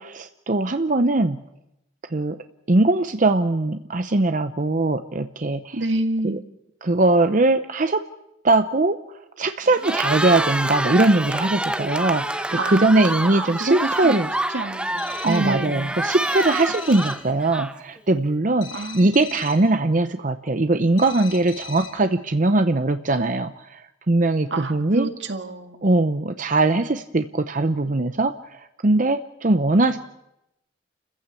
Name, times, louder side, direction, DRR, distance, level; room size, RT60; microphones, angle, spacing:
voice 1, 0.0-1.4 2.1-2.4 2.7-5.8 6.2-6.4 6.8-8.1 8.4-9.0 9.4-14.3 15.2-25.1 25.8-30.0, right 2 dB, 45° right, 9 dB, 0.8 m, -21 dB
voice 2, 5.7-6.4 12.6-14.2 14.5-15.9 18.7-19.1 24.5-25.9, right 2 dB, 80° right, 6 dB, 2.0 m, -28 dB
Cheering, 9.7-18.0, right 1 dB, 5° right, 0.8 m, -27 dB
sound 1, 15.0-15.6 16.2-17.3 18.6-19.7 21.0-22.1, left 7 dB, 75° left, 3.2 m, -40 dB
29.5 x 15.0 x 8.4 m, 0.89 s
head